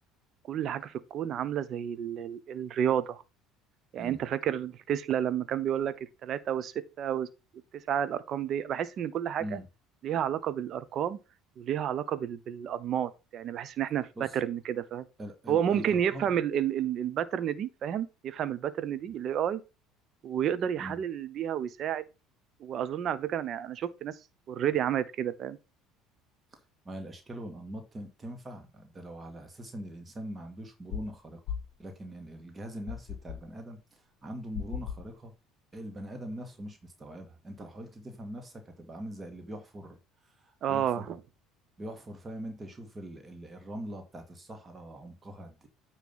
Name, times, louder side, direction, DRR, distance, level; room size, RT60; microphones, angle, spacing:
voice 1, 0.5-3.2 3.9-5.9 6.2-6.7 7.0-7.3 7.9-9.6 10.0-11.2 11.6-14.1 14.3-15.1 15.5-19.6 20.2-22.0 22.6-24.1 24.5-25.6 40.6-41.2, right 9 dB, 50° right, 0.8 m, -30 dB
voice 2, 15.2-16.3 20.8-21.0 26.5-26.6 26.9-31.4 31.8-35.3 35.7-40.0 40.2-41.2 41.8-45.7, right 1 dB, 25° right, 2.0 m, -42 dB
sound 1, 30.9-31.1 31.5-31.8 32.9-33.5 34.5-35.1, left 8 dB, 60° left, 1.0 m, -37 dB
9.2 x 3.2 x 5.5 m
hypercardioid pair, 65°, 0 cm